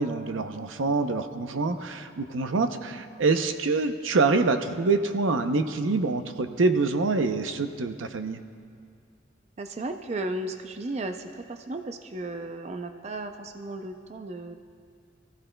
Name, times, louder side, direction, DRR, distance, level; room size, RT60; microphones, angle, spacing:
voice 1, 0.0-8.4, right 3 dB, 85° right, 8 dB, 0.7 m, -26 dB
voice 2, 9.6-14.6, right 2 dB, 35° right, 7 dB, 0.4 m, -35 dB
22.0 x 14.5 x 2.2 m, 2.2 s
head